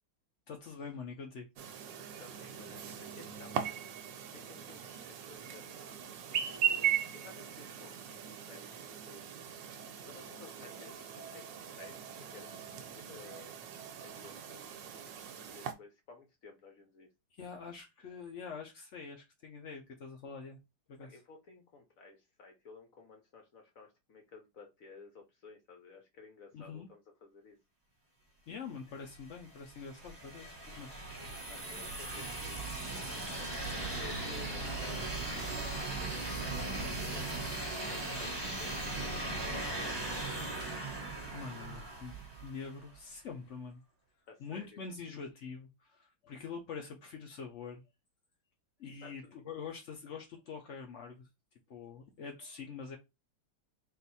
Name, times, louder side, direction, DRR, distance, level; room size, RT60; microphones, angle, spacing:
voice 1, 0.5-1.5 10.0-10.1 17.3-20.6 20.9-21.2 26.5-26.9 28.5-30.9 41.3-43.8 44.4-47.8 48.8-51.3 51.7-53.0, left 5 dB, 85° left, 0.6 m, -45 dB
Chirp tweet, 1.6-15.7, right 9 dB, 70° right, 1.3 m, -39 dB
voice 2, 1.9-3.7 4.3-9.2 10.0-13.6 14.0-14.7 15.0-17.1 21.0-27.6 31.5-32.7 33.9-35.9 36.4-40.3 44.3-44.8 49.0-49.1, left 4 dB, 60° left, 0.9 m, -55 dB
sound 1, 29.1-42.8, right 2 dB, 15° right, 1.0 m, -38 dB
3.9 x 2.6 x 4.1 m
omnidirectional pair, 2.2 m